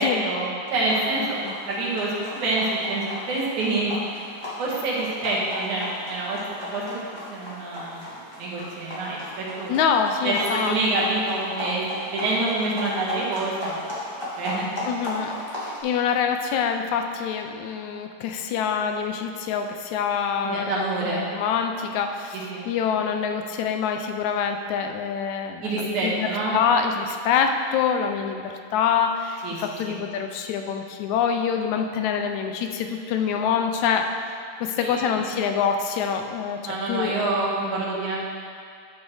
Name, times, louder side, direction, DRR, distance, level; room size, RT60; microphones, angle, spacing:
voice 1, 0.0-1.4 1.6-3.9 4.6-7.0 7.3-9.7 10.2-11.8 12.1-13.8 14.4-14.9 20.4-21.3 22.3-22.7 25.6-26.6 29.4-29.6 29.8-30.0 34.8-35.1 36.6-38.2, right 2 dB, 75° right, -6 dB, 3.0 m, -27 dB
sound 1, 0.8-15.8, left 1 dB, 20° left, 0.6 m, -35 dB
voice 2, 9.7-10.8 14.9-15.3 15.8-26.3 26.5-34.1 34.6-37.1, left 7 dB, 80° left, 5 dB, 1.8 m, -25 dB
11.5 x 6.1 x 3.3 m, 2.4 s
omnidirectional pair, 3.5 m